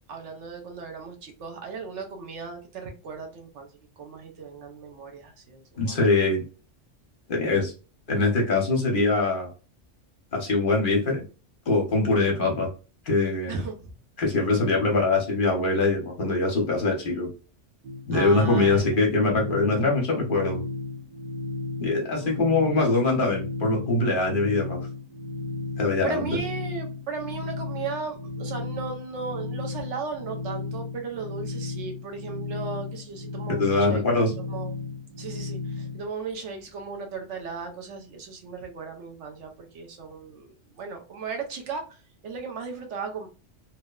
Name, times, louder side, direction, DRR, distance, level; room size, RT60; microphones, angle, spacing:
voice 1, 0.1-3.7 4.0-6.0 13.5-13.9 18.1-18.8 22.1-22.6 26.0-34.0 34.5-34.7 35.2-42.0 42.2-43.3, right 5 dB, 75° right, 4 dB, 1.0 m, -36 dB
voice 2, 5.8-6.4 7.3-7.7 8.1-9.5 10.3-11.2 11.7-12.7 13.1-13.5 14.2-17.3 18.1-20.6 21.8-24.8 25.8-26.4 33.5-34.3, left 3 dB, 50° left, 0 dB, 0.8 m, -23 dB
sound 1, 17.8-36.1, left 3 dB, 55° right, 0.7 m, -34 dB
2.9 x 2.1 x 2.2 m, 0.33 s
omnidirectional pair, 1.3 m